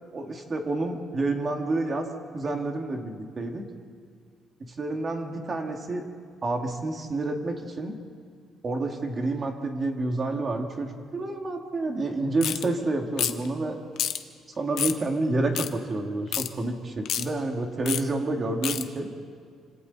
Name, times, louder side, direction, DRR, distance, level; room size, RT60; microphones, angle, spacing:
voice 1, 0.1-2.1 2.3-3.6 4.6-6.1 6.4-7.9 8.6-13.8 14.6-19.1, right 2 dB, 30° right, 3 dB, 2.1 m, -29 dB
sound 1, 12.4-12.6 13.2-13.5 14.0-14.2 14.8-15.0 15.5-15.7 16.3-16.5 17.0-17.2 17.9-18.0 18.6-18.8, left 10 dB, 65° left, 1.0 m, -28 dB
29.0 x 26.5 x 4.1 m, 2.1 s
cardioid pair, 160°, 0 cm